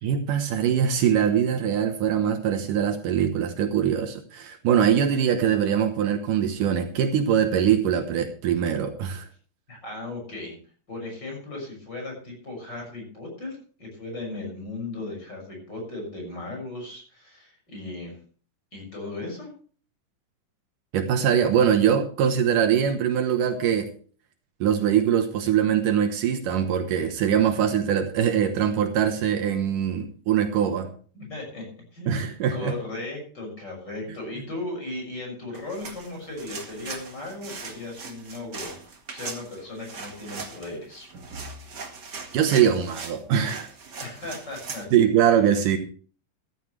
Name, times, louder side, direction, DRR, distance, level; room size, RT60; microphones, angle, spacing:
voice 1, 0.0-9.3 20.9-23.9 24.6-30.9 32.1-32.7 42.3-43.7 44.9-45.8, right 8 dB, 75° right, 6 dB, 2.6 m, -22 dB
voice 2, 9.7-10.5 10.9-18.2 18.7-19.5 31.1-31.6 31.9-41.1 44.0-44.9, left 2 dB, 30° left, 0 dB, 6.9 m, -36 dB
sound 1, 35.5-44.8, right 4 dB, 40° right, 2.0 m, -40 dB
14.0 x 14.0 x 3.3 m, 0.41 s
omnidirectional pair, 3.9 m